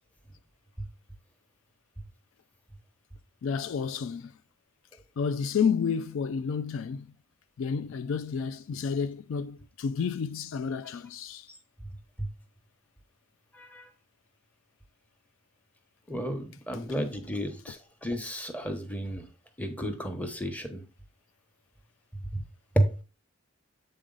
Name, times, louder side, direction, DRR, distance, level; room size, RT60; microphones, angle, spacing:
voice 1, 3.4-4.3 5.2-7.1 7.6-11.5 17.7-17.8, left 6 dB, 65° left, 0.3 m, -30 dB
voice 2, 13.5-13.9 16.1-19.2 19.6-20.8 22.3-22.4 22.7-22.9, right 1 dB, 5° left, 0.9 m, -31 dB
7.6 x 4.0 x 3.8 m
head